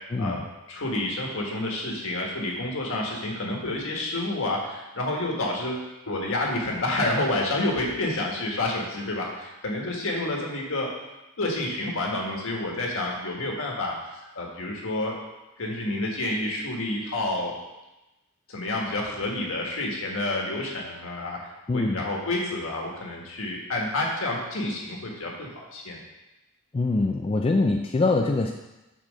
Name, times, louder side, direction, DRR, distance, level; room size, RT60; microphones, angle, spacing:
voice 1, 0.1-0.4 21.7-22.0 26.7-28.5, left 3 dB, 25° left, 2 dB, 0.3 m, -24 dB
voice 2, 0.7-10.9 11.4-13.9 14.3-15.2 15.6-17.6 18.5-26.0, left 2 dB, 65° left, -1 dB, 1.5 m, -29 dB
6.1 x 4.2 x 6.3 m, 1.0 s
head